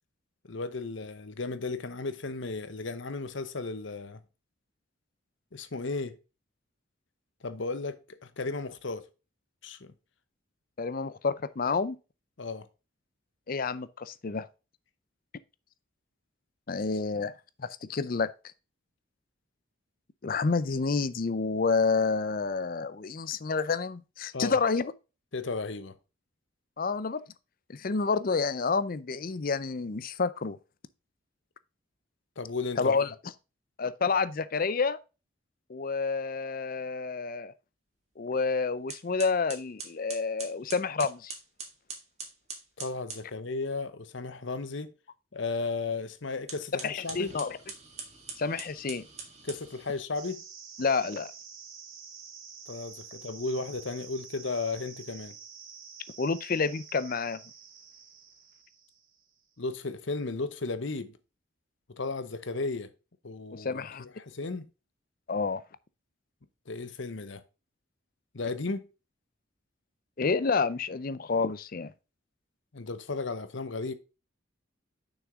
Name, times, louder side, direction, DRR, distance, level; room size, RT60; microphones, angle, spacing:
voice 1, 0.4-4.2 5.5-6.2 7.4-9.0 9.6-9.9 12.4-12.7 24.3-24.6 25.3-25.9 32.4-32.9 42.8-44.9 45.3-47.3 49.4-50.4 52.7-55.4 59.6-61.2 62.0-62.9 63.2-64.6 66.7-67.4 68.3-68.9 72.7-73.9, left 3 dB, 65° left, 0.9 m, -34 dB
voice 2, 10.8-12.0 13.5-14.5 16.7-17.3 17.6-18.3 20.2-24.9 26.8-27.2 27.7-30.6 32.8-33.1 33.8-35.0 35.7-37.5 38.2-41.3 46.8-47.6 48.4-49.0 50.8-51.3 56.2-57.4 63.5-64.0 65.3-65.6 70.2-71.9, left 4 dB, 45° left, 0.5 m, -29 dB
sound 1, 38.4-38.5 38.9-43.3 46.4-50.0, right 5 dB, 30° right, 1.8 m, -43 dB
sound 2, 50.1-59.3, right 6 dB, 85° right, 2.0 m, -48 dB
6.3 x 6.3 x 3.6 m
head